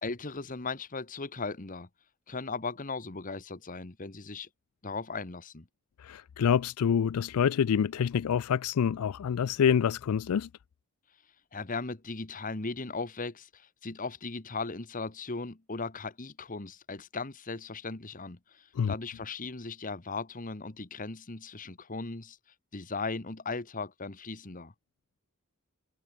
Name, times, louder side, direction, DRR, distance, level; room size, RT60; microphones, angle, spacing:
voice 1, 0.0-1.9 2.3-4.5 4.8-5.7 11.5-22.4 22.7-24.7, left 3 dB, 40° left, 1.4 m, -37 dB
voice 2, 6.0-10.5 18.8-18.9, left 7 dB, 85° left, 0.4 m, -26 dB
head